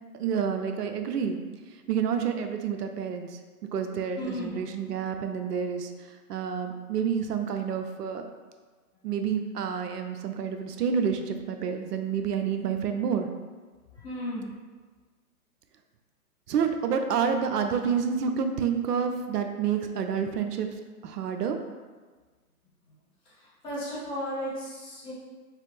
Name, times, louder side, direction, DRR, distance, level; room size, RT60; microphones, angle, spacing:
voice 1, 0.2-1.4 1.9-3.4 3.7-5.9 6.3-8.2 9.0-13.3 16.5-20.7 21.0-21.6, right 7 dB, 85° right, 6 dB, 0.6 m, -28 dB
voice 2, 4.2-4.6 13.9-14.5 23.2-25.1, equal, 10° left, -13 dB, 1.5 m, -35 dB
3.2 x 2.5 x 3.1 m, 1.4 s
hypercardioid pair, 150°, 46 cm